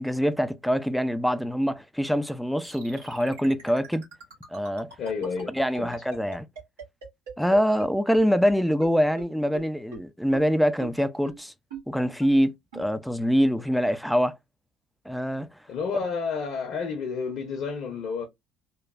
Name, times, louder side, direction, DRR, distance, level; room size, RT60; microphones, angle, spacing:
voice 1, 0.0-4.1 4.5-4.9 5.5-6.5 7.4-11.5 11.9-14.4 15.1-15.5, equal, ahead, 0.3 m, -24 dB
sound 1, 2.6-7.9 8.1-8.2 8.5-8.6 8.8-8.9 9.2-9.3 9.5-9.6 9.9-10.0 10.3-10.4 10.8-10.9 11.3-11.4 11.7-11.8 12.2-12.3 12.7-12.8, right 5 dB, 80° right, 1.5 m, -40 dB
voice 2, 5.0-5.9 15.7-18.3, left 5 dB, 55° left, 0.7 m, -31 dB
3.1 x 2.2 x 2.3 m
figure-of-eight pair, 55°, 0 cm